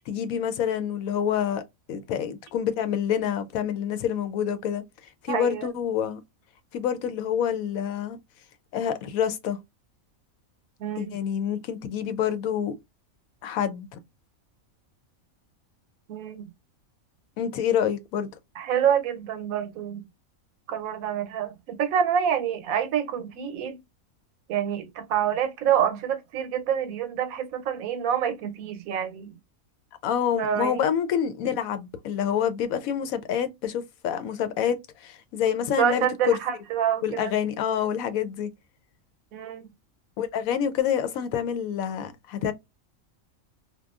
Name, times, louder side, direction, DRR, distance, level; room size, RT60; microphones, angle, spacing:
voice 1, 0.1-1.6 1.9-4.8 5.2-6.2 6.7-8.2 8.7-9.6 11.0-12.7 13.4-14.0 17.4-18.3 30.0-36.4 37.0-38.5 40.2-42.5, left 9 dB, 85° left, 1.0 m, -27 dB
voice 2, 5.3-5.7 10.8-11.2 16.1-16.5 18.6-20.0 20.7-23.8 24.5-29.4 30.4-30.9 35.8-37.3 39.3-39.7, right 9 dB, 85° right, 1.0 m, -27 dB
2.9 x 2.3 x 2.3 m
omnidirectional pair, 1.4 m